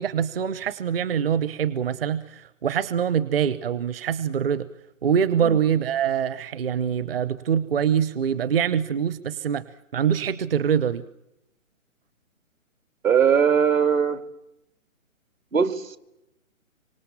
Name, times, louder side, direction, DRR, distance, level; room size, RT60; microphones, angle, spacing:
voice 1, 0.0-4.7 5.0-9.6 9.9-11.0, right 8 dB, 45° right, 15 dB, 1.0 m, -24 dB
voice 2, 13.0-14.2 15.5-16.0, right 7 dB, 70° right, 10 dB, 2.4 m, -20 dB
27.0 x 25.5 x 7.2 m, 0.90 s
figure-of-eight pair, 145°, 41 cm